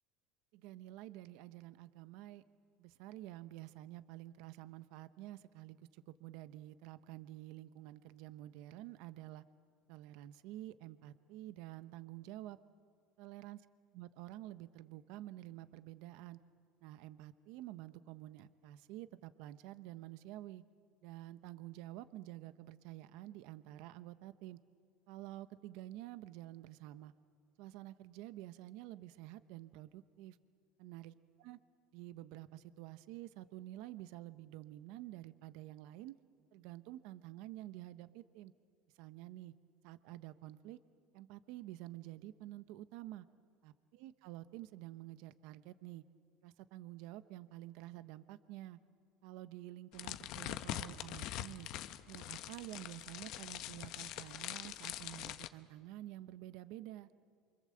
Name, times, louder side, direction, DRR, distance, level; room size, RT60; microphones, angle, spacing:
voice 1, 0.5-2.4 2.8-9.4 9.9-12.6 13.2-13.6 13.9-16.4 16.8-20.6 21.0-24.6 25.1-27.1 27.6-30.4 30.8-31.1 31.4-31.6 31.9-36.2 36.5-38.5 38.9-39.5 39.8-40.8 41.1-43.3 43.6-46.0 46.4-48.8 49.2-51.7 52.1-57.1, right 15 dB, 70° right, 13 dB, 0.9 m, -49 dB
sound 1, 49.9-55.5, left 13 dB, 55° left, 1.0 m, -44 dB
27.5 x 25.5 x 7.8 m, 2.2 s
cardioid pair, 145°, 0 cm